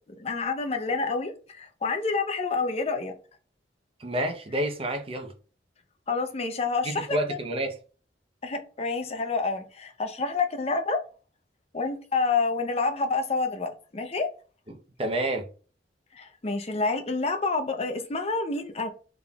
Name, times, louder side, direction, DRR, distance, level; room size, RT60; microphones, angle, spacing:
voice 1, 0.1-3.1 6.1-7.2 8.4-11.0 11.7-14.3 16.1-18.9, left 4 dB, 35° left, 0.6 m, -28 dB
voice 2, 4.0-5.3 6.8-7.8 15.0-15.4, right 1 dB, 35° right, 0.7 m, -29 dB
3.7 x 3.5 x 2.3 m
head